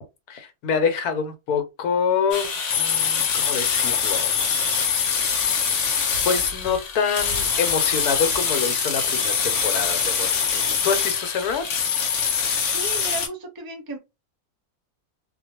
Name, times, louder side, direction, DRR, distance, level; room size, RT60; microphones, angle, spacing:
voice 1, 0.3-2.5 2.8-4.3 6.2-11.9, left 6 dB, 90° left, 1.2 m, -26 dB
sound 1, 2.3-13.3, left 6 dB, 60° left, 0.9 m, -24 dB
voice 2, 12.7-14.0, right 3 dB, 25° right, 0.5 m, -34 dB
2.4 x 2.2 x 2.8 m
omnidirectional pair, 1.6 m